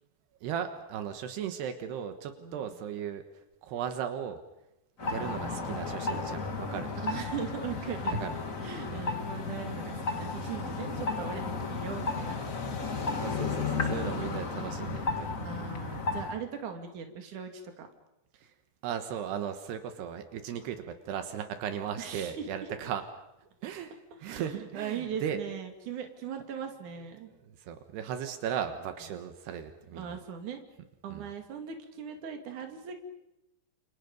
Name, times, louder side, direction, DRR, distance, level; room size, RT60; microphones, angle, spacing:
voice 1, 0.4-3.2 3.6-4.4 5.0-6.9 8.2-8.4 8.9-9.1 13.2-15.3 18.3-18.5 18.8-23.0 23.6-23.9 24.2-25.4 27.5-30.2 31.1-31.3, right 8 dB, 80° right, 7 dB, 3.4 m, -36 dB
voice 2, 2.4-2.8 5.2-6.2 7.0-8.2 8.6-12.4 12.8-12.9 15.4-17.9 22.0-22.7 24.2-27.3 29.9-30.6 31.0-33.0, right 7 dB, 50° right, 5 dB, 3.6 m, -39 dB
sound 1, 5.0-16.4, left 4 dB, 45° left, 1.0 m, -34 dB
29.5 x 28.5 x 5.4 m, 0.91 s
omnidirectional pair, 4.7 m